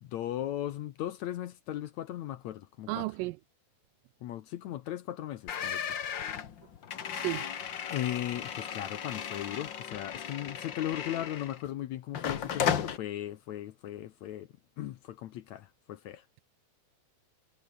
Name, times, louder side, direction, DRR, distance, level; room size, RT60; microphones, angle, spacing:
voice 1, 0.0-3.1 4.2-5.8 7.9-14.5 14.8-16.2, left 12 dB, 70° left, 1.9 m, -37 dB
voice 2, 2.9-3.4 7.2-7.4, right 21 dB, 85° right, 2.2 m, -32 dB
sound 1, 5.5-11.7 12.1-13.0, left 8 dB, 50° left, 1.5 m, -35 dB
omnidirectional pair, 4.0 m